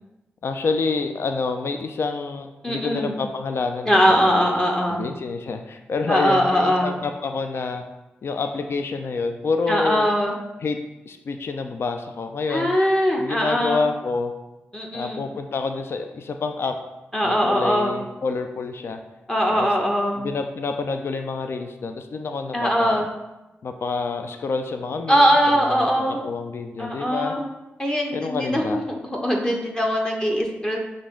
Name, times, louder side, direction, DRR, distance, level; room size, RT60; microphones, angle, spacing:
voice 1, 0.4-4.5 4.9-7.8 8.2-10.1 10.6-10.8 11.1-12.7 13.2-14.3 14.9-16.8 17.2-19.0 19.5-19.7 20.1-23.1 23.6-27.4 28.1-28.8, left 4 dB, 60° left, 6 dB, 0.4 m, -28 dB
voice 2, 2.6-3.1 3.9-5.0 6.1-6.9 9.7-10.3 12.5-13.8 14.7-15.2 17.1-17.9 19.3-20.2 22.5-23.1 25.1-26.2 26.8-27.5 27.8-30.8, equal, 15° left, 0 dB, 0.8 m, -21 dB
5.4 x 2.5 x 3.7 m, 1.0 s
cardioid pair, 50°, 5 cm